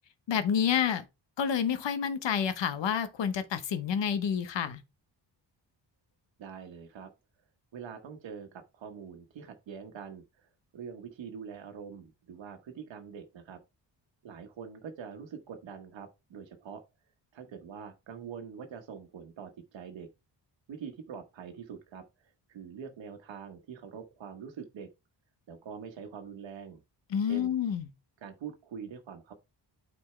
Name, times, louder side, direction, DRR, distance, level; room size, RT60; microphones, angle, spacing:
voice 1, 0.3-1.0 1.4-4.8 27.1-27.9, left 8 dB, 75° left, 1.0 m, -29 dB
voice 2, 6.4-7.1 7.7-13.6 14.2-16.8 17.3-20.1 20.7-24.9 25.5-26.8 27.2-27.5 28.2-29.3, right 7 dB, 85° right, 1.2 m, -44 dB
8.8 x 4.4 x 3.2 m
wide cardioid pair, 135°, 44 cm